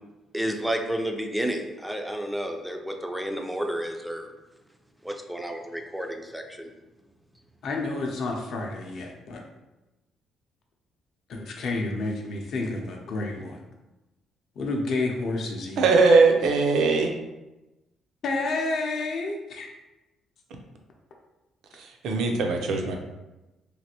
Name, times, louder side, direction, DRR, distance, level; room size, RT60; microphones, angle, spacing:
voice 1, 0.3-4.3 5.0-6.7, right 1 dB, ahead, 3 dB, 0.3 m, -31 dB
voice 2, 7.6-9.4 11.3-13.6 14.6-15.9 18.2-19.7, left 2 dB, 60° left, 1 dB, 0.5 m, -30 dB
voice 3, 15.8-17.1 22.0-23.0, right 4 dB, 75° right, 3 dB, 0.5 m, -20 dB
3.2 x 2.5 x 2.8 m, 1.0 s
cardioid pair, 135°, 0 cm